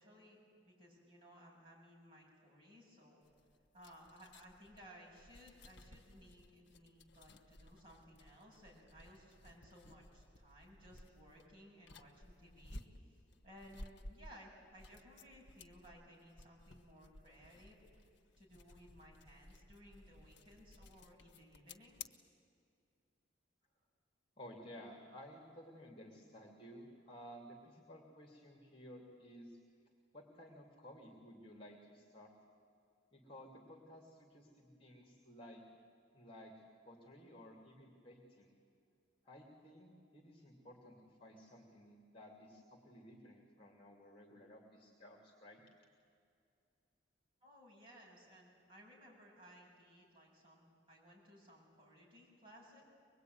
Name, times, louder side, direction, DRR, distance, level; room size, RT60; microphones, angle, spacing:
voice 1, 0.0-3.2 3.7-12.8 13.4-17.8 18.4-22.2 47.4-52.8, equal, 30° right, -4 dB, 7.8 m, -60 dB
sound 1, 3.2-22.1, left 2 dB, 65° left, 1.1 m, -57 dB
voice 2, 24.4-29.6 30.1-32.3 33.1-35.6 36.1-38.5 39.2-45.6, equal, 30° left, 2 dB, 2.7 m, -56 dB
24.0 x 21.0 x 9.5 m, 2.4 s
head